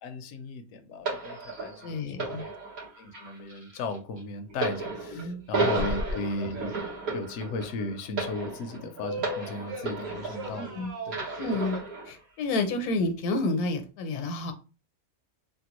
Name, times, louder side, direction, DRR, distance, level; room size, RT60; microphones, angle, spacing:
voice 1, 0.0-2.5 3.0-6.8 7.1-10.8 11.1-11.3, left 2 dB, 70° left, 0.8 m, -36 dB
sound 1, 1.1-10.7 11.1-12.1 12.9-13.1, right 3 dB, 75° right, 1.8 m, -34 dB
voice 2, 1.8-2.5 5.1-5.4 5.7-5.8 10.5-10.9 11.4-11.8 12.1-14.5, left 2 dB, 85° left, 1.2 m, -30 dB
sound 2, 5.7-7.3 7.6-7.7 8.6-11.8, equal, 60° right, 1.3 m, -38 dB
3.6 x 2.2 x 3.0 m
omnidirectional pair, 1.5 m